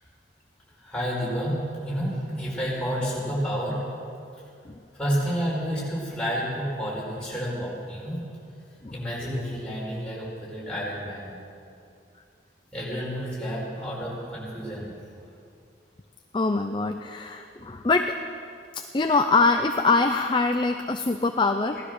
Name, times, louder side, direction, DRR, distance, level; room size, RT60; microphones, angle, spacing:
voice 1, 0.8-3.8 4.9-8.2 8.9-11.4 12.7-14.9, equal, 5° left, -7 dB, 5.0 m, -30 dB
voice 2, 16.3-18.1 18.9-21.8, left 3 dB, 25° left, 6 dB, 0.5 m, -23 dB
17.0 x 13.0 x 6.6 m, 2.4 s
head